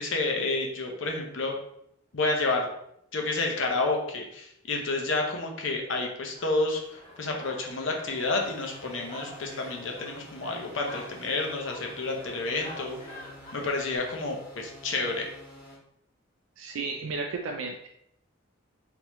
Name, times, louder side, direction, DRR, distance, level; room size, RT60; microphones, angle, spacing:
voice 1, 0.0-1.5 2.1-2.7 3.1-13.0 13.5-15.3, left 3 dB, 70° left, 1 dB, 0.7 m, -30 dB
sound 1, 6.4-14.0, equal, 40° left, 1.1 m, -47 dB
sound 2, 8.1-15.7, left 1 dB, 10° right, 1.4 m, -49 dB
voice 2, 16.6-17.9, right 4 dB, 90° right, 2 dB, 0.4 m, -33 dB
3.5 x 3.0 x 3.0 m, 0.74 s
head